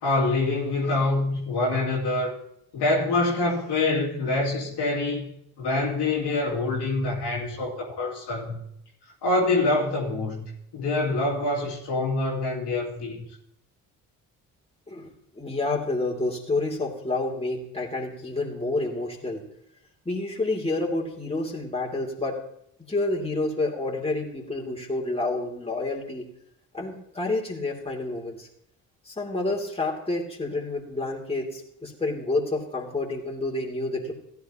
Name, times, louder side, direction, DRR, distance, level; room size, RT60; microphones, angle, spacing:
voice 1, 0.0-2.3 2.7-5.3 5.6-8.6 9.2-10.4 10.7-13.2, left 2 dB, 65° left, -4 dB, 2.7 m, -25 dB
voice 2, 14.9-19.4 20.0-22.4 22.9-26.3 26.7-28.5 29.0-34.1, left 2 dB, 15° left, -2 dB, 2.9 m, -29 dB
16.5 x 10.5 x 3.0 m, 0.75 s
hypercardioid pair, 45°, 43 cm